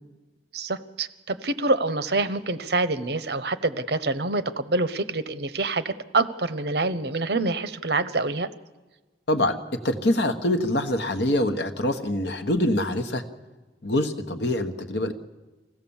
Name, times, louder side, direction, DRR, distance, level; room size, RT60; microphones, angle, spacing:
voice 1, 0.5-8.5, right 3 dB, 60° right, 13 dB, 0.8 m, -26 dB
voice 2, 9.3-9.6 9.8-13.2 13.8-15.1, left 1 dB, 70° left, 7 dB, 1.3 m, -24 dB
25.5 x 16.5 x 7.2 m, 1.2 s
head